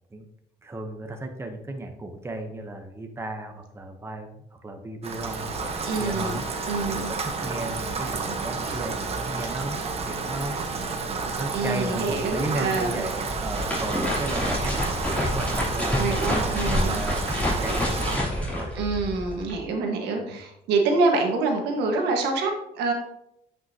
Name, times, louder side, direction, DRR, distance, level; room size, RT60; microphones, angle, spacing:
voice 1, 0.6-11.1 11.4-17.4 17.6-19.2 20.2-20.4, right 2 dB, 15° right, 4 dB, 0.9 m, -35 dB
Rain, 5.0-18.2, right 4 dB, 35° right, 1.0 m, -31 dB
voice 2, 5.8-6.4 6.7-7.1 8.1-8.3 8.6-8.8 11.5-13.0 16.0-17.0 18.7-22.9, right 3 dB, 85° right, 2 dB, 1.5 m, -26 dB
sound 1, 13.3-19.5, left 1 dB, 10° left, 2.9 m, -28 dB
9.1 x 5.4 x 2.8 m, 0.81 s
cardioid pair, 110°, 17 cm